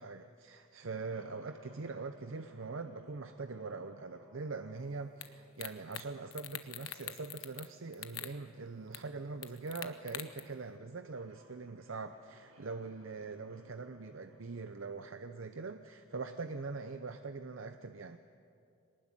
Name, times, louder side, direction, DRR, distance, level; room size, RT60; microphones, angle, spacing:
voice 1, 0.0-18.2, right 4 dB, 65° right, 9 dB, 0.7 m, -43 dB
sound 1, 0.9-16.7, right 1 dB, 85° right, 4.1 m, -64 dB
sound 2, 5.2-5.3 5.6-6.0 6.3-7.7 7.9-8.3 8.9-9.0 9.4-10.4, left 11 dB, 70° left, 1.1 m, -43 dB
23.0 x 19.0 x 9.1 m, 2.6 s
head